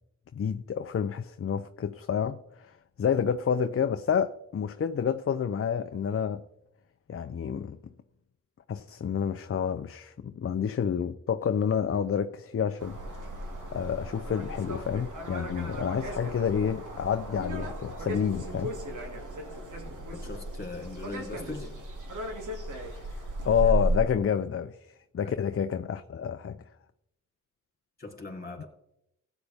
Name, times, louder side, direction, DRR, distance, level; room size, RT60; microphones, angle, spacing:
voice 1, 0.3-6.4 7.1-7.8 8.7-13.0 13.7-18.7 23.0-23.1 23.4-24.8 25.1-26.6 28.6-28.7, left 7 dB, 45° left, 0.6 m, -29 dB
sound 1, 12.8-24.0, right 1 dB, 70° right, 2.6 m, -35 dB
voice 2, 19.8-21.7 25.3-25.4 28.0-28.7, left 3 dB, 30° left, 3.6 m, -40 dB
15.5 x 9.1 x 3.5 m
cardioid pair, 85°, 32 cm